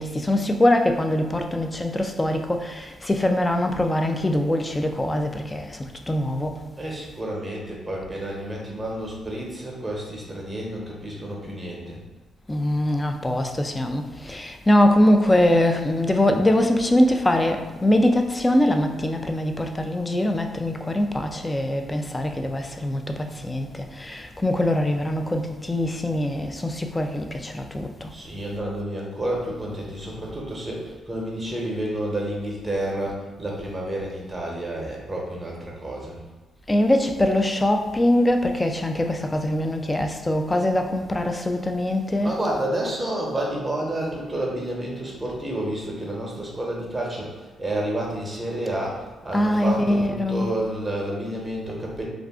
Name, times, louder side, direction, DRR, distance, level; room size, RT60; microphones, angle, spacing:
voice 1, 0.0-6.6 12.5-28.1 36.7-42.3 49.3-50.5, left 1 dB, 15° left, 0.3 m, -22 dB
voice 2, 6.8-12.0 28.1-36.2 42.1-52.0, right 1 dB, 15° right, 0.9 m, -30 dB
2.4 x 2.4 x 3.5 m
cardioid pair, 90°, 0 cm